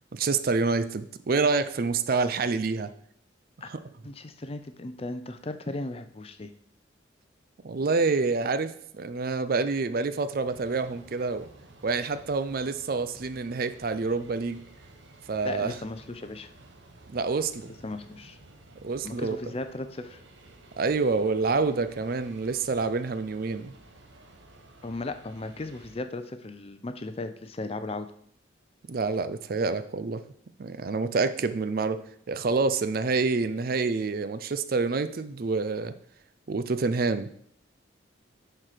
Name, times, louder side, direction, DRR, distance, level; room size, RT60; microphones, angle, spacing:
voice 1, 0.1-2.9 3.7-3.8 7.6-11.5 11.8-14.6 15.3-15.7 17.1-17.7 18.8-19.4 20.8-23.7 28.9-30.2 30.6-32.0 32.3-35.9 36.5-37.3, right 4 dB, 50° right, 12 dB, 0.5 m, -27 dB
voice 2, 4.0-6.5 15.4-16.5 17.8-18.4 19.0-20.2 24.8-28.1, left 2 dB, 30° left, 9 dB, 0.5 m, -36 dB
sound 1, 10.3-25.9, right 2 dB, 70° right, 1.0 m, -53 dB
9.7 x 4.5 x 5.0 m, 0.66 s
head